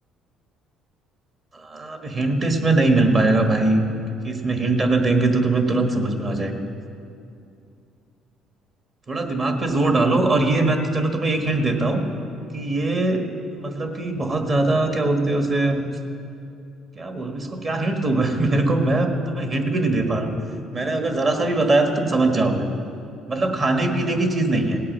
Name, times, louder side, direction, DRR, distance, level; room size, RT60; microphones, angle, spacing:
voice 1, 1.6-3.8 4.2-6.6 9.1-12.0 12.5-13.2 13.5-15.8 17.0-20.3 20.7-22.7 23.3-24.8, right 2 dB, 30° right, 4 dB, 1.5 m, -21 dB
17.5 x 8.6 x 6.3 m, 2.6 s
cardioid pair, 125°, 0 cm